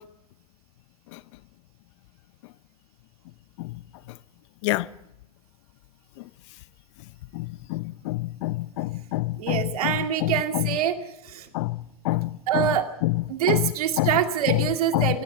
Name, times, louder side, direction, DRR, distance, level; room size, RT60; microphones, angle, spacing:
voice 1, 7.3-10.7 11.5-11.8 12.0-12.7 13.0-13.2 13.5-13.7 14.0-14.1 14.5-14.6 14.9-15.1, left 20 dB, 50° left, 0.7 m, -26 dB
voice 2, 9.3-11.0 11.2-11.5 12.5-12.9 13.3-15.2, right 10 dB, 70° right, 2.4 m, -25 dB
19.0 x 15.5 x 9.2 m
hypercardioid pair, 130°, 20 cm